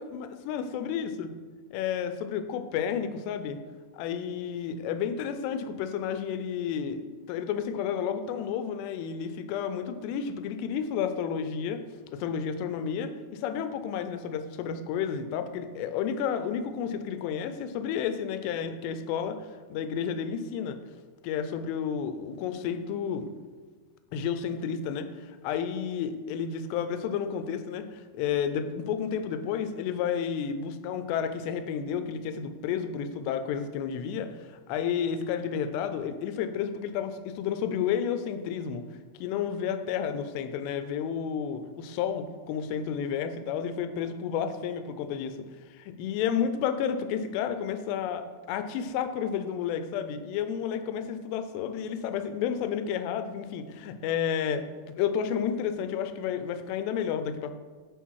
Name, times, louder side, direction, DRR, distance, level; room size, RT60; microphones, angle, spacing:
voice 1, 0.0-1.3 1.7-3.6 3.9-7.0 7.3-11.8 12.1-19.4 19.7-20.8 21.2-23.3 24.1-38.8 39.2-45.4 45.7-54.7 55.0-57.5, left 8 dB, 85° left, 9 dB, 2.7 m, -31 dB
9.1 x 4.3 x 4.7 m, 1.5 s
omnidirectional pair, 4.9 m